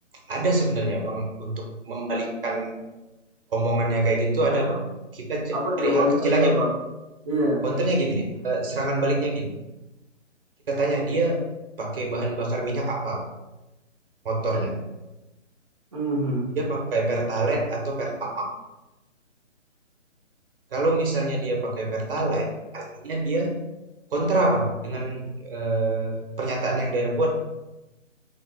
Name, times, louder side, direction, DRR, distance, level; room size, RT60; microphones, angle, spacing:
voice 1, 0.3-2.7 3.5-6.6 7.6-9.5 10.7-11.4 11.8-13.2 14.2-14.8 16.6-18.5 20.7-23.5 24.1-27.3, right 2 dB, 45° right, 0 dB, 1.1 m, -25 dB
voice 2, 5.5-6.7 7.2-7.6 15.9-16.4, equal, 25° right, -5 dB, 0.8 m, -24 dB
5.3 x 3.8 x 2.2 m, 1.0 s
hypercardioid pair, 160°, 38 cm